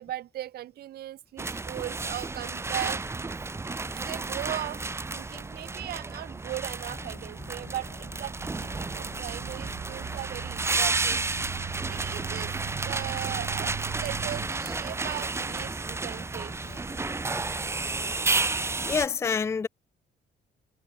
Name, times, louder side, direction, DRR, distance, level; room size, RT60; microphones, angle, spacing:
voice 1, 0.0-3.4 3.9-11.2 11.9-12.6 12.8-16.8, right 13 dB, 75° right, 5.0 m, -38 dB
sound 1, 1.4-19.1, right 3 dB, 15° right, 1.0 m, -32 dB
sound 2, 6.9-17.7, left 8 dB, 50° left, 3.2 m, -51 dB
sound 3, 8.3-14.5, right 10 dB, 55° right, 1.1 m, -40 dB
voice 2, 18.8-19.7, left 6 dB, 15° left, 0.4 m, -28 dB
cardioid pair, 135°, 16 cm